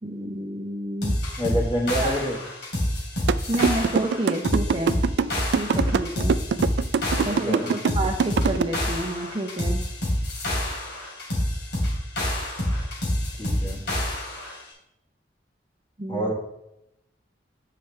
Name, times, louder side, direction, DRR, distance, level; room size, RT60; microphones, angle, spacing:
voice 1, 0.0-1.1 1.9-2.1 3.5-5.0 5.5-6.3 7.2-9.8 16.0-16.3, right 1 dB, 30° right, 0 dB, 0.7 m, -29 dB
sound 1, 1.0-14.6, left 1 dB, 85° left, 3.1 m, -27 dB
voice 2, 1.4-2.4 7.0-7.7 13.4-13.8 16.1-16.3, equal, 25° left, 0 dB, 1.4 m, -28 dB
sound 2, 3.3-8.6, right 6 dB, 80° right, 0.3 m, -22 dB
8.8 x 5.8 x 3.3 m, 0.84 s
head